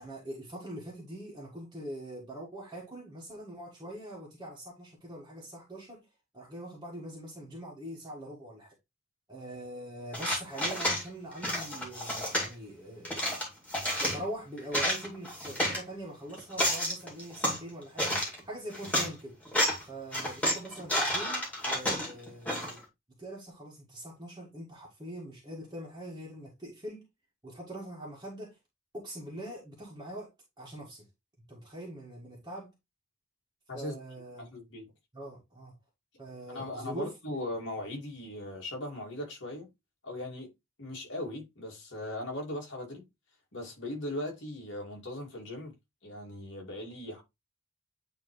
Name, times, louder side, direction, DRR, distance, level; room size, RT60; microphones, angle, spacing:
voice 1, 0.0-6.1 6.3-8.7 9.3-13.2 14.0-19.4 19.8-22.8 23.2-27.1 27.4-28.6 28.9-31.1 31.5-32.7 33.7-34.6 35.1-35.8 36.2-37.1, right 1 dB, 20° right, 1.7 m, -43 dB
sound 1, 10.1-11.0 11.4-12.5 13.0-14.2 14.6-15.8 16.3-17.6 18.0-18.4 18.7-19.1 19.5-19.8 20.1-22.8, equal, 5° left, 2.3 m, -30 dB
voice 2, 34.4-34.9 36.5-39.7 40.0-40.5 40.8-43.0 43.5-45.7 46.0-47.2, left 1 dB, 55° left, 2.5 m, -39 dB
9.0 x 3.4 x 3.2 m
head